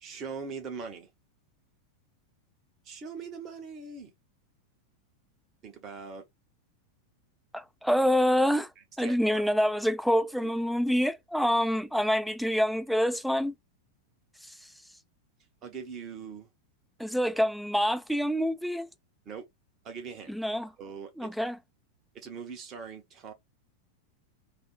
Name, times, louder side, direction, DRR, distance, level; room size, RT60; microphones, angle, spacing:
voice 1, 0.0-1.1 2.8-4.1 5.6-6.2 8.8-9.5 10.4-10.5 15.6-16.5 17.0-17.1 19.2-19.4 19.8-20.3 20.8-21.4 22.1-23.3, right 5 dB, 30° right, 1.0 m, -41 dB
voice 2, 7.5-8.7 9.0-13.5 14.4-14.5 17.0-18.9 20.3-20.7 21.2-21.6, equal, ahead, 0.3 m, -26 dB
3.4 x 2.1 x 2.4 m
figure-of-eight pair, 90°, 0 cm